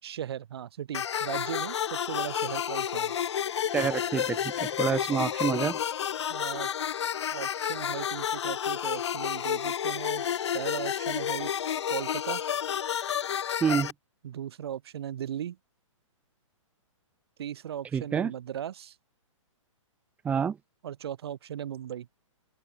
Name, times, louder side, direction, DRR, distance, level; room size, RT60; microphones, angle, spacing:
voice 1, 0.0-3.1 6.3-6.7 7.3-10.3 10.5-11.5 11.9-12.4 14.2-15.6 17.4-19.0 20.8-22.1, right 10 dB, 50° right, 7.8 m, -37 dB
sound 1, 0.9-13.9, left 9 dB, 55° left, 1.4 m, -30 dB
voice 2, 3.7-5.8 13.6-13.9 17.9-18.3 20.2-20.6, right 7 dB, 10° right, 1.2 m, -28 dB
hypercardioid pair, 165°, 17 cm